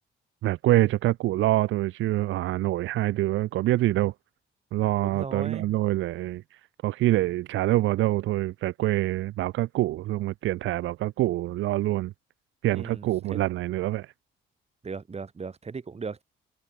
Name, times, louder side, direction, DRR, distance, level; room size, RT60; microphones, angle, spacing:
voice 1, 0.4-4.1 4.7-12.1 12.6-14.1, right 15 dB, 75° right, 0.6 m, -25 dB
voice 2, 5.0-5.7 12.7-13.4 14.8-16.2, right 5 dB, 30° right, 2.5 m, -37 dB
cardioid pair, 90°, 20 cm